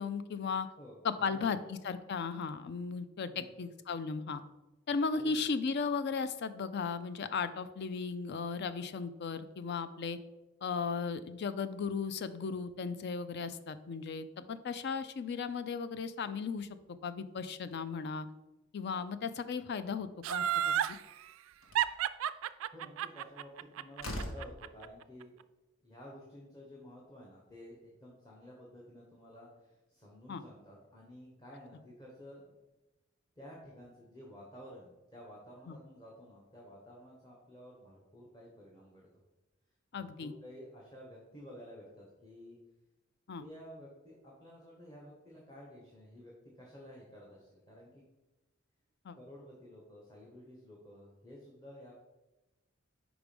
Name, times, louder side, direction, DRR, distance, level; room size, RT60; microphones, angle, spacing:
voice 1, 0.0-0.7 1.0-4.4 4.9-10.2 10.6-16.7 17.0-18.3 18.7-20.7 30.3-30.4 35.7-35.8 39.9-40.3 43.3-43.4 49.0-49.2, left 5 dB, 55° left, 12 dB, 0.4 m, -36 dB
voice 2, 0.8-1.6 3.2-3.5 5.1-5.4 22.7-25.4 25.8-32.5 33.4-39.1 39.9-42.6 43.4-48.0 49.1-51.9, equal, 20° left, -3 dB, 1.1 m, -52 dB
Laughter, 20.2-21.0 21.8-24.9 25.2-25.3, right 10 dB, 80° right, 0.3 m, -31 dB
Slam, 21.6-21.9 23.5-23.6 24.0-24.5, left 1 dB, 90° left, 1.1 m, -40 dB
5.0 x 4.7 x 5.2 m, 1.0 s
head